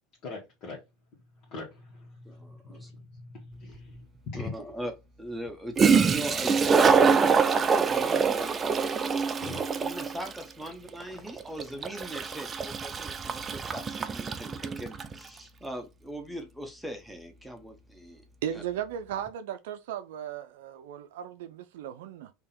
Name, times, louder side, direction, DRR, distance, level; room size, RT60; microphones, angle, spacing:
voice 1, 0.2-0.8 1.5-4.7 9.3-9.6, left 3 dB, 50° left, 1.6 m, -42 dB
voice 2, 2.2-2.9 4.3-4.9 5.2-8.7 9.0-18.2 18.5-18.6, right 1 dB, ahead, 1.0 m, -40 dB
Toilet flush, 3.7-3.8 5.5-5.6 5.8-15.2, right 5 dB, 25° right, 0.5 m, -25 dB
voice 3, 18.4-22.3, right 10 dB, 80° right, 0.5 m, -36 dB
3.7 x 2.9 x 4.3 m
supercardioid pair, 110°, 0 cm